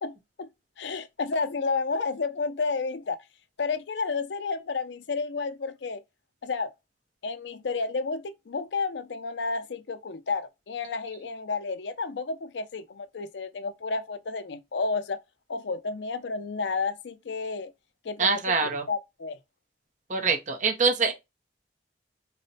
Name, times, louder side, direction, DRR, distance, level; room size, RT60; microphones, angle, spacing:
voice 1, 0.0-0.5 0.8-3.2 3.6-6.0 6.4-6.7 7.2-15.2 15.5-17.7 18.0-19.4, left 4 dB, 80° left, 0.5 m, -31 dB
voice 2, 18.2-18.8 20.1-21.1, right 4 dB, 45° right, 0.7 m, -24 dB
4.1 x 2.1 x 4.0 m
head